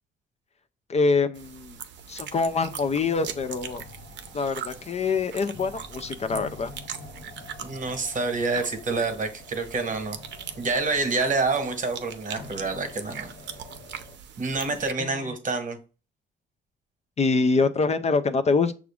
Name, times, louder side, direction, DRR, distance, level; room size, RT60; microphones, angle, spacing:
voice 1, 0.9-1.7 2.1-3.8 4.3-6.7 15.0-15.3 17.2-18.7, left 4 dB, 35° left, 0.4 m, -25 dB
sound 1, 1.3-14.9, right 8 dB, 65° right, 0.6 m, -41 dB
sound 2, 2.5-14.2, left 3 dB, 55° left, 0.8 m, -47 dB
voice 2, 7.6-10.2 10.6-13.3 14.4-15.8, right 3 dB, 40° right, 1.1 m, -27 dB
5.9 x 2.4 x 3.5 m
cardioid pair, 90°, 20 cm